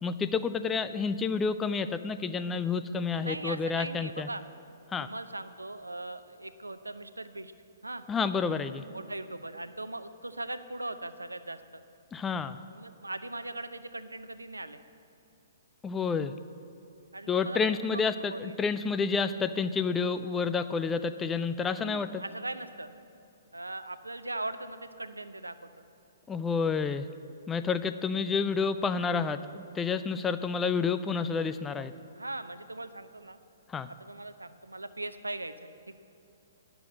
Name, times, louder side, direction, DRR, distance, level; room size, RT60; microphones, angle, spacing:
voice 1, 0.0-4.3 4.9-5.1 8.1-8.8 12.1-12.6 15.8-16.3 17.3-22.2 26.3-27.1 27.5-31.9 33.7-33.9, left 5 dB, 15° left, 11 dB, 0.3 m, -29 dB
voice 2, 3.1-4.4 5.0-7.5 7.8-8.0 8.9-11.8 12.7-14.8 17.1-18.0 18.3-18.5 21.8-22.9 23.5-25.5 32.2-33.4 34.0-35.9, right 2 dB, 80° right, 12 dB, 0.5 m, -39 dB
10.0 x 6.9 x 7.7 m, 2.8 s
figure-of-eight pair, 120°, 0 cm